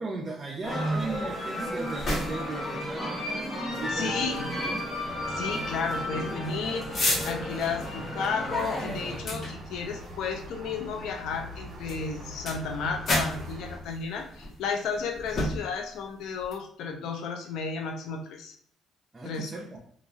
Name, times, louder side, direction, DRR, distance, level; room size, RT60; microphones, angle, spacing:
voice 1, 0.0-3.2 3.7-4.9 19.1-19.8, right 2 dB, 30° right, -3 dB, 0.6 m, -37 dB
sound 1, 0.6-16.5, left 1 dB, 50° left, 1.0 m, -36 dB
sound 2, 0.6-9.2, equal, 20° left, 1.0 m, -33 dB
voice 2, 3.9-4.5 5.3-18.5 19.2-19.5, left 5 dB, 75° left, 3 dB, 0.5 m, -33 dB
sound 3, 5.0-13.8, equal, 55° right, 1.0 m, -43 dB
3.0 x 2.5 x 2.3 m, 0.62 s
supercardioid pair, 65°, 0 cm